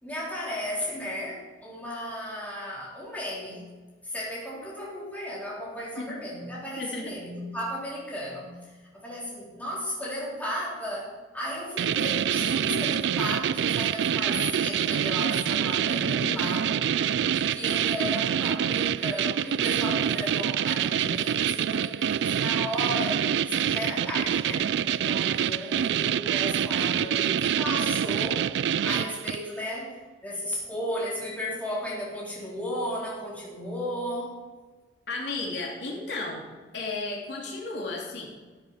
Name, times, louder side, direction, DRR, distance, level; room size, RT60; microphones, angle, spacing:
voice 1, 0.0-3.6 4.0-16.8 17.3-28.5 28.8-30.0 30.2-34.4, equal, 10° left, -6 dB, 4.2 m, -35 dB
voice 2, 6.8-7.1 16.1-16.5 27.0-27.2 35.1-36.5 36.7-38.3, left 3 dB, 85° left, -2 dB, 3.1 m, -34 dB
sound 1, 11.8-29.5, right 9 dB, 80° right, 0.3 m, -26 dB
14.0 x 7.9 x 5.9 m, 1.3 s
head